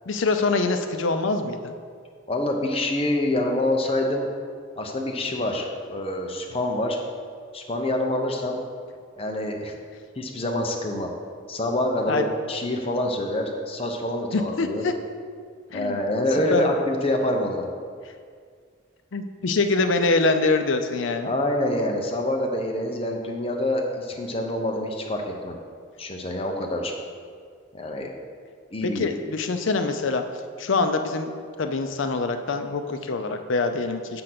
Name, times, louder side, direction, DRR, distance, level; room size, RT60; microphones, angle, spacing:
voice 1, 0.1-1.7 12.1-12.2 14.3-14.9 15.7-16.0 16.5-16.7 19.1-21.3 28.8-30.2 30.6-31.3 31.6-34.2, left 3 dB, 75° left, 7 dB, 0.5 m, -24 dB
voice 2, 2.3-4.3 4.8-7.0 7.5-8.6 9.2-9.7 10.2-11.1 11.5-14.8 15.7-17.7 21.2-25.6 26.0-26.9 27.7-28.1 28.7-29.1, left 1 dB, 30° left, 2 dB, 0.7 m, -26 dB
7.6 x 3.8 x 5.9 m, 2.1 s
head